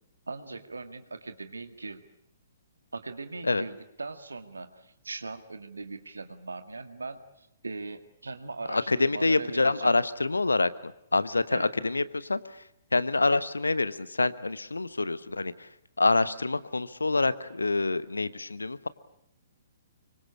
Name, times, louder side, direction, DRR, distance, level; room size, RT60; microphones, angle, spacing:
voice 1, 0.3-2.0 2.9-9.9 11.5-11.7, right 3 dB, 75° right, 9 dB, 2.0 m, -40 dB
voice 2, 8.7-12.6 12.9-15.7 16.0-18.9, left 3 dB, 80° left, 16 dB, 1.1 m, -26 dB
26.0 x 24.0 x 8.6 m, 0.75 s
figure-of-eight pair, 120°, 0 cm